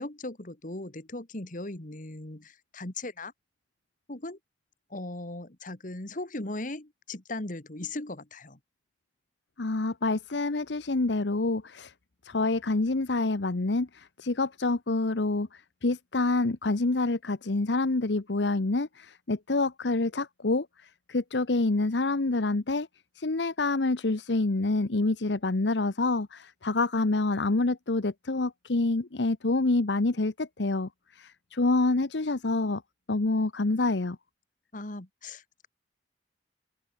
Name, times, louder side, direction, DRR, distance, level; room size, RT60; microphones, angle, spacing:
voice 1, 0.0-3.3 4.1-4.4 4.9-8.6 34.7-35.7, left 2 dB, 50° left, 2.2 m, -38 dB
voice 2, 9.6-11.9 12.2-22.9 23.1-32.8 33.1-34.2, left 2 dB, 90° left, 1.0 m, -27 dB
open air
head